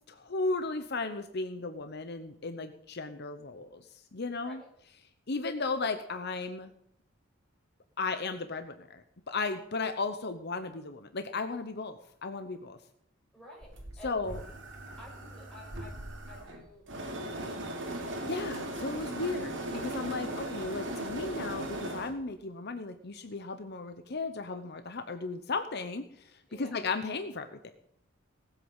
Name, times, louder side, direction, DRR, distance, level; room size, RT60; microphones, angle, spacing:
voice 1, 0.1-3.8 4.1-4.6 5.3-6.7 8.0-12.8 14.0-14.4 18.2-26.1 26.6-27.7, left 3 dB, 55° left, 9 dB, 0.9 m, -35 dB
voice 2, 4.4-4.7 13.3-14.2 15.0-17.9 26.5-26.9, equal, 5° left, -3 dB, 6.1 m, -52 dB
sound 1, 13.6-22.2, right 1 dB, 65° right, 2.8 m, -38 dB
19.0 x 8.4 x 5.6 m, 0.72 s
head